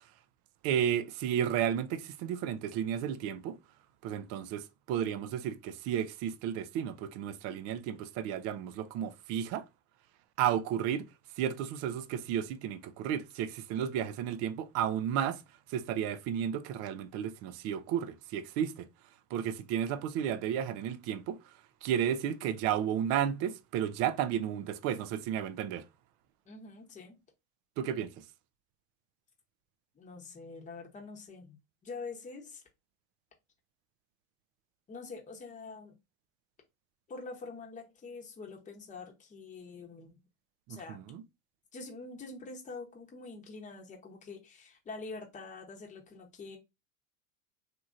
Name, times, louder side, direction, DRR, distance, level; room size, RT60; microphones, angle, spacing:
voice 1, 0.6-3.6 4.0-9.6 10.4-11.1 11.4-15.4 15.7-18.9 19.3-21.4 21.8-25.8 27.8-28.1 40.7-41.2, right 9 dB, 40° right, 0.4 m, -33 dB
voice 2, 26.5-27.2 29.9-31.6 31.8-32.6 34.9-35.9 37.1-40.2 40.7-41.0 41.7-46.6, left 3 dB, 20° left, 0.9 m, -45 dB
2.9 x 2.5 x 2.5 m
hypercardioid pair, 90°, 41 cm